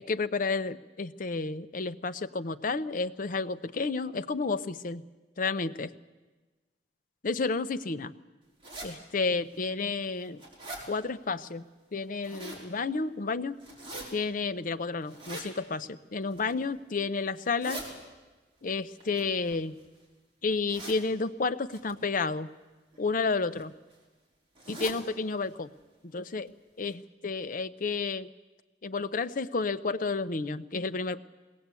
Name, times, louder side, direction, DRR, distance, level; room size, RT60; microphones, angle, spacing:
voice 1, 0.0-5.0 5.4-5.9 7.2-8.1 8.8-10.4 10.9-11.6 11.9-13.6 14.1-17.8 18.6-19.8 20.4-22.5 23.0-23.7 24.7-25.7 26.0-26.5 26.8-28.3 28.8-31.2, left 4 dB, 50° left, 12 dB, 0.7 m, -31 dB
sound 1, 8.6-8.9 9.5-9.6 10.1-10.8 12.0-12.6 13.6-14.0 15.0-15.5 16.2-16.6 17.3-17.9 19.0-20.0 20.7-21.0 21.7-21.9 22.9-23.2 23.5-23.6 23.9-24.0 24.5-25.0 25.4-25.5 25.8-25.9 26.5-26.6 26.9-27.0, right 1 dB, 30° right, 4.9 m, -42 dB
21.0 x 18.0 x 8.3 m, 1.2 s
head